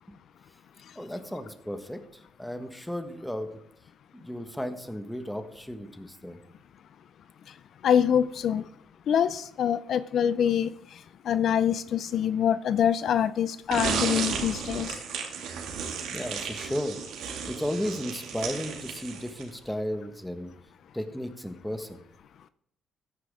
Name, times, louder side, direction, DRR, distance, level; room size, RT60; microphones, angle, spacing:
voice 1, 0.9-2.0 2.4-3.5 4.1-6.4 16.1-17.0 17.4-20.5 20.9-22.0, equal, 5° left, 8 dB, 1.5 m, -34 dB
voice 2, 7.8-8.7 9.1-10.7 11.2-15.0, left 9 dB, 65° left, 14 dB, 0.5 m, -25 dB
sound 1, 13.7-19.6, right 6 dB, 85° right, 2.3 m, -33 dB
13.5 x 10.5 x 3.6 m, 0.70 s
cardioid pair, 90°, 0 cm